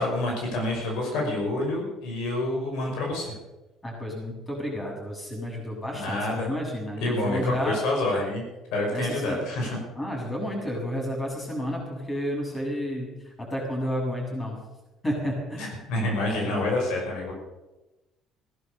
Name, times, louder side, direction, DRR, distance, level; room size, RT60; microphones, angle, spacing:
voice 1, 0.0-3.3 5.9-6.5 7.0-8.4 8.7-9.8 15.6-17.3, left 2 dB, 80° left, 0 dB, 5.8 m, -28 dB
voice 2, 3.8-7.8 8.9-9.4 9.9-14.6 15.0-15.7 16.4-16.6, equal, 20° left, 0 dB, 7.3 m, -31 dB
17.5 x 11.0 x 6.8 m, 1.0 s
supercardioid pair, 85°, 0 cm